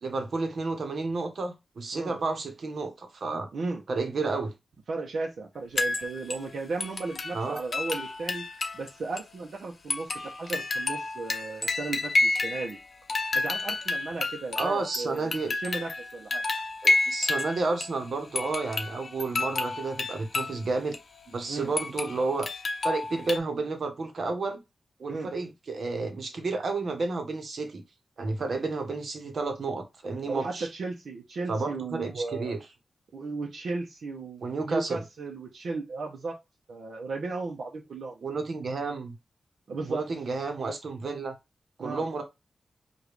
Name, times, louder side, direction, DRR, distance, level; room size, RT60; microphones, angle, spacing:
voice 1, 0.0-3.5 3.9-4.5 7.3-7.6 14.6-15.5 16.8-20.9 21.3-22.5 22.8-24.6 25.0-27.8 28.2-30.7 31.5-32.6 34.4-35.0 38.2-39.2 39.9-41.3 41.8-42.2, right 3 dB, 65° right, 1.1 m, -31 dB
voice 2, 3.5-3.8 4.9-8.4 8.7-12.8 13.3-16.4 21.5-21.7 25.1-25.3 30.2-32.6 33.1-36.4 36.7-38.2 39.7-40.1 41.8-42.2, right 3 dB, 80° right, 0.8 m, -35 dB
sound 1, 5.8-6.5 6.8-8.9 9.2-9.3 9.9-12.8 13.1-18.0 18.3-20.6 20.9-21.0 21.8-23.4, left 2 dB, 50° left, 0.7 m, -30 dB
5.0 x 2.6 x 3.2 m
wide cardioid pair, 125°, 0 cm